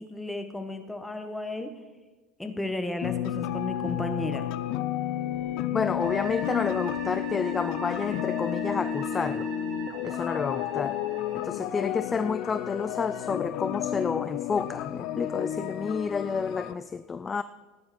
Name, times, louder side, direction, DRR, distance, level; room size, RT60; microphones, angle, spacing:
voice 1, 0.0-1.7 2.4-4.5, left 2 dB, 5° left, 1.3 m, -33 dB
sound 1, 3.0-16.7, left 11 dB, 60° left, 0.6 m, -32 dB
voice 2, 5.7-9.5 10.0-11.0 11.3-17.4, left 5 dB, 20° left, 0.3 m, -30 dB
sound 2, 6.0-11.4, right 5 dB, 50° right, 3.6 m, -42 dB
16.0 x 10.0 x 4.3 m
supercardioid pair, 120°, 0 cm